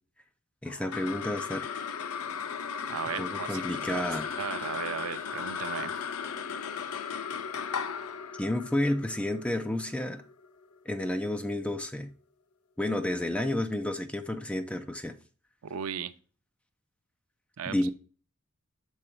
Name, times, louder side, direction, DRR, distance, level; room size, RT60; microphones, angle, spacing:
voice 1, 0.6-1.7 3.2-4.3 8.4-10.2 10.9-12.1 12.8-15.1 17.7-17.9, left 1 dB, 5° left, 0.5 m, -31 dB
sound 1, 0.7-11.3, left 6 dB, 85° left, 0.5 m, -36 dB
voice 2, 2.9-4.1 4.4-6.0 15.6-16.1 17.6-17.9, right 7 dB, 80° right, 0.5 m, -36 dB
6.3 x 3.9 x 4.4 m
head